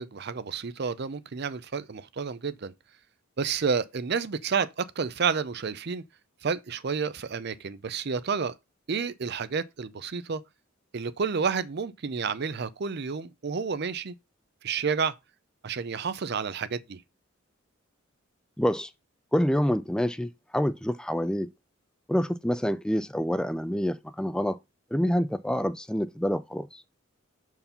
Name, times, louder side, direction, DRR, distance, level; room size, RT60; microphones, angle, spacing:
voice 1, 0.0-2.7 3.4-6.0 6.4-8.5 8.9-10.4 10.9-14.1 14.6-15.1 15.6-17.0, right 5 dB, 50° right, 0.5 m, -30 dB
voice 2, 18.6-18.9 19.3-21.5 22.1-24.6 24.9-26.8, equal, 5° left, 0.3 m, -27 dB
5.3 x 4.7 x 5.5 m
head